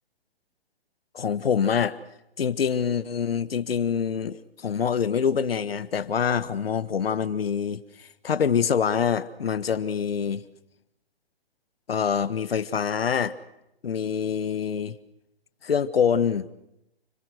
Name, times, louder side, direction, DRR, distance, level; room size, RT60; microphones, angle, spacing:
voice 1, 1.1-2.0 2.4-10.4 11.9-13.4 13.8-14.9 15.6-16.5, left 7 dB, 70° left, 1.5 m, -25 dB
30.0 x 22.0 x 6.4 m
hypercardioid pair, 140°, 31 cm